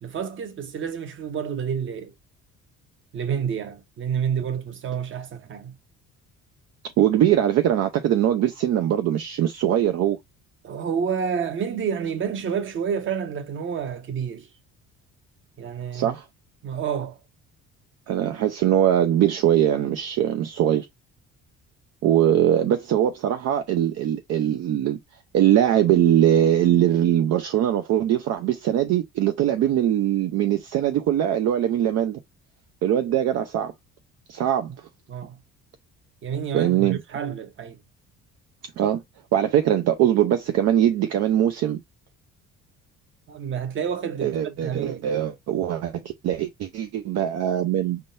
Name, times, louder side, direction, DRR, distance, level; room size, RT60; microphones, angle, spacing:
voice 1, 0.0-2.1 3.1-5.7 10.6-14.5 15.6-16.1 16.6-17.2 35.1-35.4 36.2-37.8 43.3-44.4 44.6-45.2, right 7 dB, 40° right, 1.0 m, -29 dB
voice 2, 7.0-10.2 15.9-16.2 18.1-20.9 22.0-25.0 25.3-32.2 32.8-33.7 34.3-34.7 36.5-37.0 38.8-39.0 39.3-41.8 44.2-48.0, right 11 dB, 55° right, 0.6 m, -21 dB
5.4 x 3.7 x 2.5 m
cardioid pair, 155°, 30 cm